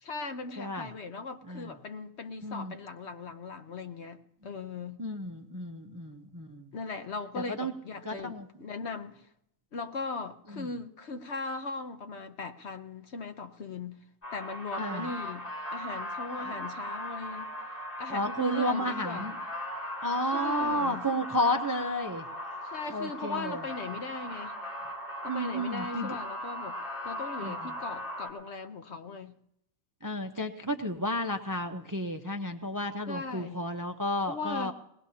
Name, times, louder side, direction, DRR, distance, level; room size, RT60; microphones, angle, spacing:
voice 1, 0.0-5.0 6.7-9.3 9.7-14.0 14.3-15.5 15.7-17.5 18.0-19.3 20.3-21.1 22.6-24.5 25.2-26.8 27.0-29.4 33.1-33.7 34.3-34.7, left 4 dB, 55° left, 1.0 m, -38 dB
voice 2, 0.6-0.9 1.5-1.7 2.4-2.7 5.0-6.7 7.4-7.7 8.0-8.5 10.5-10.7 14.8-15.1 16.4-16.5 18.1-19.4 20.0-22.3 22.9-23.6 25.3-26.2 27.4-27.7 30.0-34.7, equal, 20° right, 0.5 m, -32 dB
sound 1, 14.2-28.3, equal, 40° left, 3.3 m, -38 dB
21.5 x 18.5 x 2.8 m
omnidirectional pair, 1.4 m